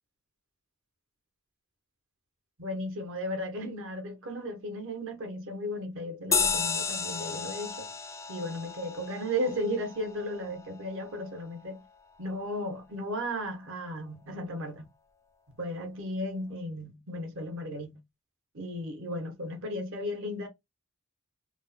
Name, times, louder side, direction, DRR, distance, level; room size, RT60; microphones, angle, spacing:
voice 1, 2.6-7.9 8.3-11.8 12.2-14.9 15.6-18.0 18.5-20.5, equal, 65° right, 1.1 m, -35 dB
sound 1, 6.3-11.2, left 5 dB, 15° left, 0.4 m, -33 dB
3.3 x 2.2 x 4.0 m
head